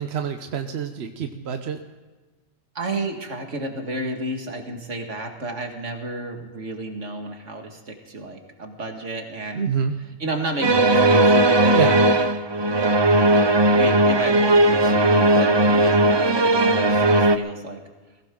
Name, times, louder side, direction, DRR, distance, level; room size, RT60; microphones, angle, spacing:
voice 1, 0.0-1.8 9.6-9.9 11.7-12.0, right 6 dB, 65° right, 6 dB, 1.2 m, -27 dB
voice 2, 2.7-9.7 10.2-12.1 12.6-17.8, right 2 dB, 85° right, 3 dB, 2.4 m, -32 dB
sound 1, 10.6-17.4, right 1 dB, 25° right, 0.6 m, -17 dB
21.0 x 16.0 x 3.8 m, 1.3 s
omnidirectional pair, 1.2 m